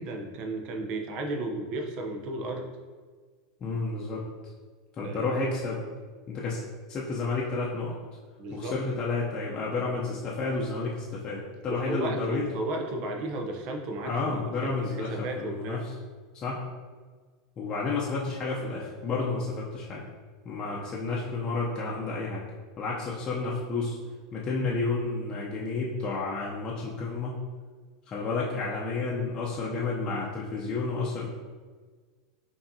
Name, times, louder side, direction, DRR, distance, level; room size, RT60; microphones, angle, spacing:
voice 1, 0.0-2.7 5.0-5.4 8.4-8.8 11.7-15.8, right 2 dB, 50° right, 2 dB, 0.7 m, -34 dB
voice 2, 3.6-4.2 5.0-5.8 6.3-6.6 6.9-8.0 8.5-12.5 14.0-15.9 16.3-16.6 17.6-20.1 20.4-22.4 22.8-24.0 24.3-27.4 28.1-31.3, left 3 dB, 35° left, -5 dB, 0.6 m, -31 dB
4.8 x 2.8 x 2.7 m, 1.5 s
hypercardioid pair, 110°, 2 cm